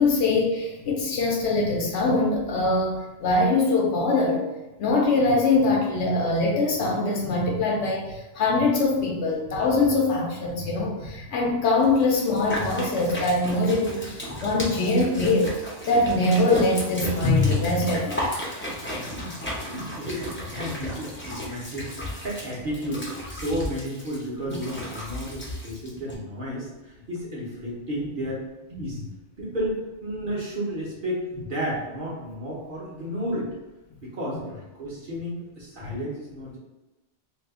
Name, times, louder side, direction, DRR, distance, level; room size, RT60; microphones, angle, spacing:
voice 1, 0.0-4.4 4.8-15.5 15.9-18.3 18.9-19.1 35.8-35.9, left 2 dB, 65° left, -1 dB, 0.8 m, -23 dB
sound 1, 11.8-26.1, equal, 15° left, 0.5 m, -34 dB
voice 2, 19.2-28.4 28.7-29.0 29.4-33.5 34.0-36.6, equal, 45° right, -5 dB, 1.0 m, -32 dB
2.7 x 2.4 x 3.5 m, 1.1 s
omnidirectional pair, 1.3 m